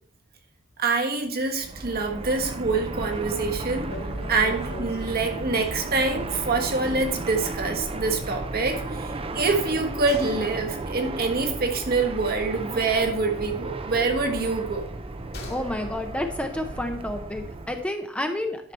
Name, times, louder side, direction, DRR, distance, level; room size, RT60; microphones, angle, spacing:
voice 1, 0.8-4.0 4.3-14.9, right 3 dB, 50° right, 4 dB, 1.4 m, -26 dB
Fixed-wing aircraft airplane, 1.5-17.9, right 2 dB, 30° right, 0.6 m, -34 dB
sound 1, 3.9-6.6 7.0-7.1 7.4-7.5 9.2-13.1 13.4-15.8 16.1-16.2, left 2 dB, 50° left, 2.1 m, -44 dB
voice 2, 15.5-18.7, left 1 dB, 5° left, 5 dB, 0.7 m, -30 dB
11.0 x 5.8 x 4.2 m, 0.63 s
head